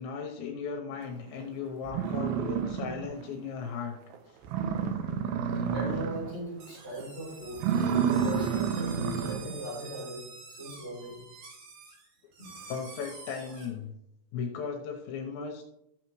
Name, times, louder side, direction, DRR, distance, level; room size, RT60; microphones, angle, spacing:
voice 1, 0.0-4.0 12.7-13.9 14.3-15.6, left 6 dB, 80° left, 1 dB, 3.1 m, -36 dB
sound 1, 1.4-1.5 1.9-3.3 3.7-3.8 4.1-4.2 4.4-6.4 6.7-7.0 7.5-9.5, right 7 dB, 85° right, 2.1 m, -29 dB
voice 2, 5.7-7.7 8.2-11.2 12.4-12.6, right 1 dB, 15° right, -6 dB, 3.7 m, -38 dB
sound 2, 6.6-13.7, right 4 dB, 65° right, 3.8 m, -48 dB
13.5 x 7.2 x 3.1 m, 0.80 s
omnidirectional pair, 5.4 m